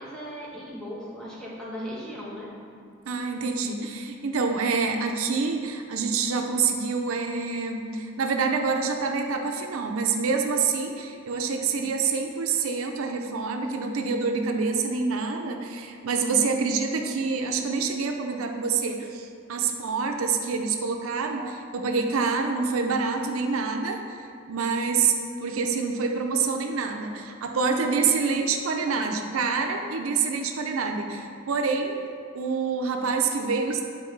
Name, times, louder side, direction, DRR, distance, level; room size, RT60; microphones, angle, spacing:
voice 1, 0.0-2.5, equal, 5° left, -7 dB, 1.1 m, -37 dB
voice 2, 3.1-32.0 32.3-33.8, right 5 dB, 85° right, 4 dB, 0.5 m, -27 dB
8.5 x 3.8 x 3.2 m, 2.3 s
head